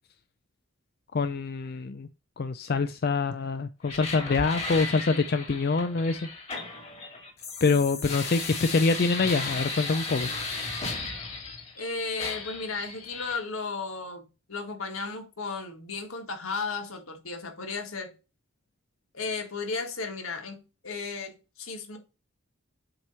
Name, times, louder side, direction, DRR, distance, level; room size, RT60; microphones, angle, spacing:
voice 1, 1.1-2.1 2.4-6.3 7.6-10.3, left 4 dB, 50° left, 0.4 m, -25 dB
sound 1, 3.8-11.8 12.2-13.4, left 3 dB, 30° left, 2.1 m, -35 dB
voice 2, 11.8-18.1 19.1-22.0, left 4 dB, 80° left, 1.9 m, -34 dB
7.7 x 3.0 x 5.5 m
head